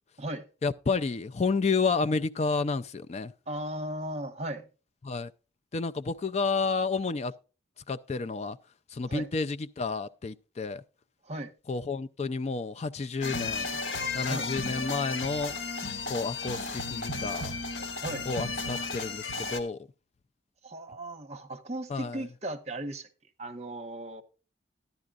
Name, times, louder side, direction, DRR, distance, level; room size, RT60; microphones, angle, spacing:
voice 1, 0.6-3.3 5.0-5.3 5.7-7.3 7.8-8.6 8.9-10.8 11.7-13.8 14.1-15.6 16.1-17.5 18.3-19.9 21.9-22.3, left 4 dB, 35° left, 0.4 m, -30 dB
voice 2, 3.5-4.7 9.1-9.2 11.3-11.5 14.3-14.5 18.0-18.3 20.6-23.1 23.4-24.2, right 1 dB, 35° right, 1.0 m, -36 dB
sound 1, 13.2-19.6, left 3 dB, 80° left, 1.8 m, -34 dB
13.0 x 10.5 x 2.4 m
head